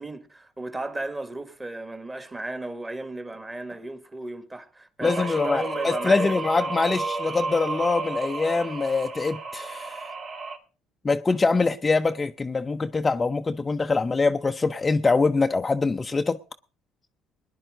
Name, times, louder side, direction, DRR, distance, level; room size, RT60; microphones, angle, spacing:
voice 1, 0.0-6.4, right 2 dB, 20° right, 2.0 m, -34 dB
voice 2, 5.0-10.0 11.0-16.4, left 4 dB, 25° left, 0.7 m, -24 dB
sound 1, 5.0-10.6, right 3 dB, 55° right, 2.4 m, -32 dB
19.5 x 10.5 x 3.9 m
hypercardioid pair, 70°, 0 cm